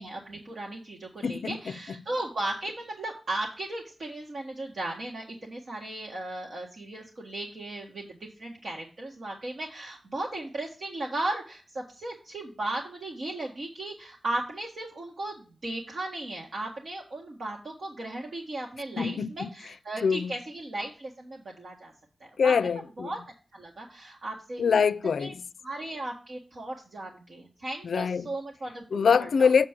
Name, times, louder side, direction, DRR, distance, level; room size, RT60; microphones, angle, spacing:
voice 1, 0.0-21.9 22.2-22.5 23.0-23.2 23.5-24.6 25.2-25.3 25.6-29.5, right 2 dB, 65° right, 1.6 m, -36 dB
voice 2, 1.2-2.1 19.0-19.5 20.0-20.4 22.4-23.1 24.6-25.5 27.8-28.3 28.9-29.7, left 6 dB, 90° left, 0.4 m, -25 dB
7.3 x 6.8 x 3.6 m
wide cardioid pair, 105°, 0 cm